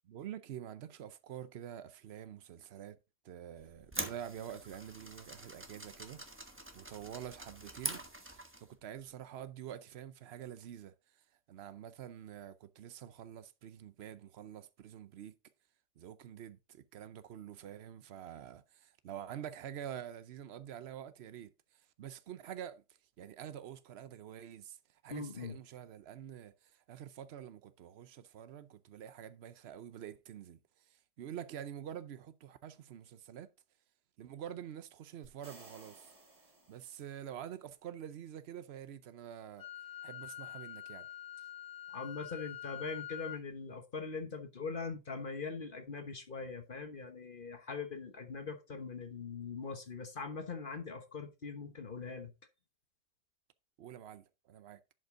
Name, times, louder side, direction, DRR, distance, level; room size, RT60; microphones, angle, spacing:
voice 1, 0.0-3.0 3.2-6.2 6.7-10.9 11.5-15.3 16.0-22.8 23.2-24.8 25.0-30.6 30.9-33.5 34.2-36.1 36.7-39.7 40.0-41.1 53.8-54.8, right 10 dB, 70° right, 0.6 m, -47 dB
sound 1, 3.6-8.7, right 1 dB, 10° right, 0.8 m, -44 dB
voice 2, 25.1-25.6 41.9-52.3, left 4 dB, 35° left, 1.0 m, -42 dB
sound 2, 35.2-37.3, right 2 dB, 40° right, 3.6 m, -57 dB
Wind instrument woodwind instrument, 39.6-43.4, left 12 dB, 75° left, 3.8 m, -46 dB
11.0 x 5.3 x 3.7 m
omnidirectional pair, 1.8 m